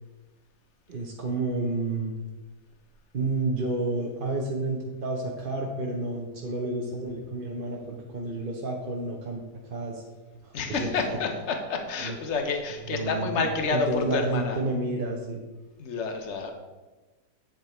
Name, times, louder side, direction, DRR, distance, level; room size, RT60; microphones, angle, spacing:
voice 1, 0.9-2.2 3.1-9.4 9.7-10.0 10.4-11.0 12.0-12.2 12.8-13.4 13.7-15.4, right 2 dB, 40° right, -1 dB, 0.9 m, -30 dB
voice 2, 10.5-11.3 11.7-14.6 15.8-16.5, left 4 dB, 45° left, 5 dB, 1.3 m, -29 dB
8.8 x 6.7 x 4.4 m, 1.2 s
omnidirectional pair, 1.8 m